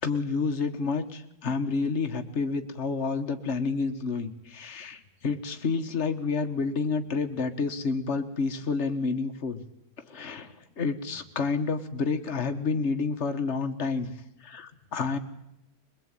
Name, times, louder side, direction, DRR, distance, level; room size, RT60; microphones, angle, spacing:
voice 1, 0.0-9.6 10.0-14.1 14.4-15.2, left 4 dB, 45° left, 7 dB, 1.8 m, -29 dB
22.5 x 22.0 x 9.1 m, 0.82 s
omnidirectional pair, 1.6 m